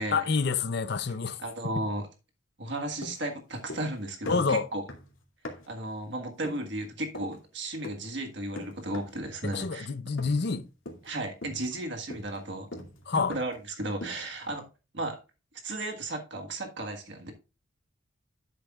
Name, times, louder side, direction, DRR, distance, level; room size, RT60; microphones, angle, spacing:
voice 1, 0.1-1.4 1.6-1.9 4.3-4.7 9.4-10.7 13.1-13.3, left 5 dB, 55° left, 0.7 m, -28 dB
voice 2, 1.4-2.0 2.6-4.8 5.7-9.9 11.0-12.7 13.1-14.6 14.9-15.2 15.6-17.3, right 1 dB, 60° right, 1.6 m, -34 dB
sound 1, 3.0-4.0 4.2-5.8 6.4-6.7 7.1-7.4 7.8-8.1 8.6-9.2 9.5-9.8 10.2-10.6 10.9-11.1 11.4-13.7 14.0-14.4, left 1 dB, 90° left, 2.3 m, -42 dB
11.0 x 8.0 x 2.4 m
head